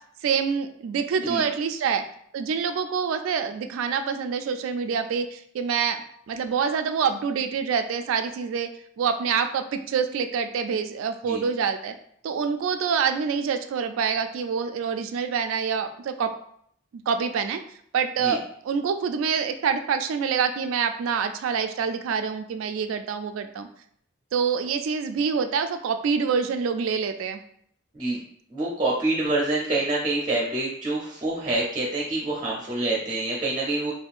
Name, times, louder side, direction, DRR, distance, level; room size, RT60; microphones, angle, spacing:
voice 1, 0.2-2.0 2.3-6.0 6.3-8.7 9.0-11.9 12.2-16.3 17.1-17.6 17.9-23.7 24.3-27.4, right 6 dB, 90° right, 8 dB, 0.3 m, -26 dB
voice 2, 28.5-33.9, right 2 dB, 25° right, -4 dB, 0.5 m, -26 dB
3.5 x 2.2 x 2.4 m, 0.65 s
head